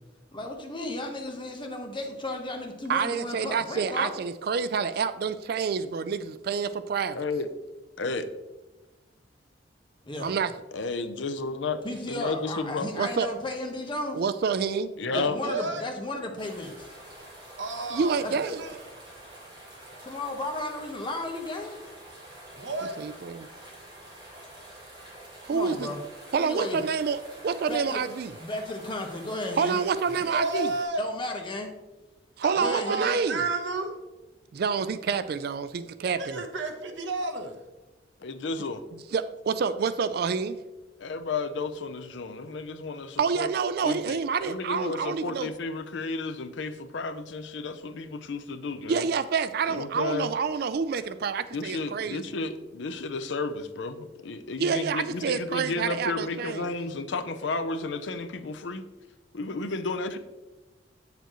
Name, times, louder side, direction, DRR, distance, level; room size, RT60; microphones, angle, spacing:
voice 1, 0.3-4.1 10.1-10.3 11.8-14.2 15.1-16.9 18.2-18.3 20.0-21.8 25.5-26.0 26.4-26.8 27.7-28.0 28.4-29.8 31.0-31.7 32.6-33.1, left 1 dB, 25° left, 2 dB, 1.1 m, -34 dB
voice 2, 2.9-7.2 10.2-10.5 13.0-13.3 14.1-14.9 17.9-18.6 23.0-23.5 25.4-25.9 26.3-28.3 29.6-30.7 32.4-33.4 34.5-36.4 39.1-40.6 43.2-45.5 48.9-52.2 54.6-56.7, right 5 dB, 55° right, 13 dB, 0.3 m, -28 dB
voice 3, 7.1-7.5 8.0-8.2 10.7-11.8 12.1-12.9 15.0-15.4 38.2-38.8 41.0-43.5 43.8-49.1 49.7-50.3 51.5-58.8 59.3-60.2, left 3 dB, 70° left, 10 dB, 0.6 m, -32 dB
voice 4, 15.0-15.9 17.6-18.7 22.5-23.0 30.2-31.0 32.4-33.9 36.2-37.5, right 3 dB, 70° right, 5 dB, 1.0 m, -31 dB
sound 1, 16.4-30.8, right 1 dB, 25° right, 2.7 m, -47 dB
8.1 x 6.7 x 3.0 m, 1.1 s
head